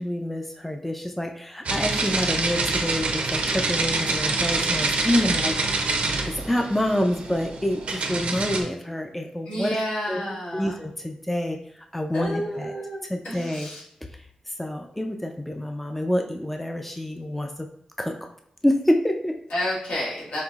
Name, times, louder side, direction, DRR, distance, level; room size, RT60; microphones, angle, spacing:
voice 1, 0.0-9.7 10.1-11.6 11.9-12.7 13.1-13.7 14.6-17.7 18.0-18.1 18.6-19.3, left 1 dB, 5° left, 3 dB, 0.4 m, -27 dB
sound 1, 1.6-8.6, right 3 dB, 70° right, 0.6 m, -26 dB
voice 2, 9.5-10.8 12.1-13.8 19.5-20.4, equal, 80° left, -5 dB, 1.6 m, -30 dB
5.5 x 2.9 x 2.4 m, 0.72 s
wide cardioid pair, 115°, 2 cm